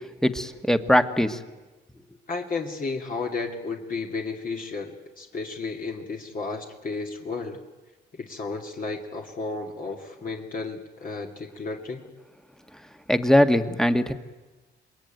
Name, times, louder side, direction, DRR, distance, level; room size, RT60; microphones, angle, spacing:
voice 1, 0.2-1.4 13.1-14.1, equal, ahead, 9 dB, 1.6 m, -21 dB
voice 2, 2.3-7.6 8.1-12.1, left 4 dB, 45° left, 1 dB, 2.6 m, -33 dB
27.0 x 21.5 x 9.2 m, 1.2 s
cardioid pair, 90°, 20 cm